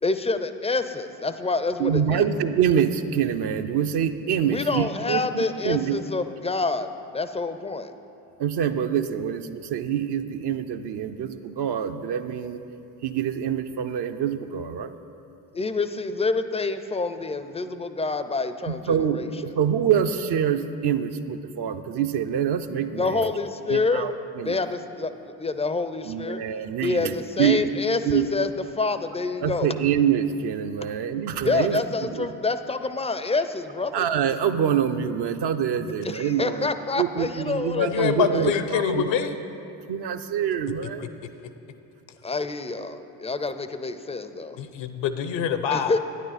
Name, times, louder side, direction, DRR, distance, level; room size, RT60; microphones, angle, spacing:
voice 1, 0.0-2.2 4.5-7.9 15.5-19.3 22.9-24.1 24.4-26.4 26.8-28.5 28.8-29.8 31.4-34.1 36.0-38.5 42.2-44.6 45.7-46.0, left 3 dB, 15° left, 10 dB, 0.4 m, -27 dB
voice 2, 1.8-6.0 8.4-12.6 13.0-14.9 18.7-23.3 23.7-24.6 26.0-27.7 28.0-28.3 29.4-32.3 33.9-39.3 39.9-41.1, right 8 dB, 55° right, 8 dB, 0.6 m, -26 dB
voice 3, 37.8-39.3 41.0-41.1 44.6-45.9, left 8 dB, 65° left, 10 dB, 0.7 m, -25 dB
9.6 x 9.2 x 4.1 m, 2.8 s
hypercardioid pair, 50°, 48 cm